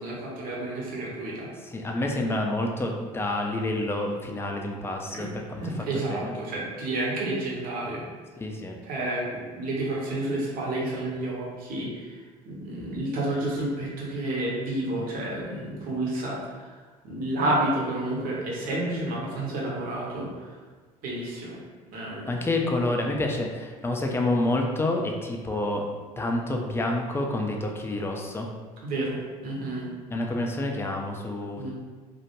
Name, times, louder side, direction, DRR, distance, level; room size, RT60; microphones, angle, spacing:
voice 1, 0.0-1.5 5.1-5.3 5.6-8.0 8.9-12.2 12.4-16.7 17.0-20.6 21.0-21.6 21.9-22.4 28.8-29.2 29.4-29.9 31.6-31.7, right 1 dB, 50° right, -4 dB, 0.8 m, -30 dB
voice 2, 1.6-6.3 8.4-8.8 22.3-25.8 26.2-28.5 30.1-31.7, left 2 dB, 15° left, 1 dB, 0.4 m, -28 dB
2.2 x 2.1 x 2.9 m, 1.4 s
hypercardioid pair, 65°, 18 cm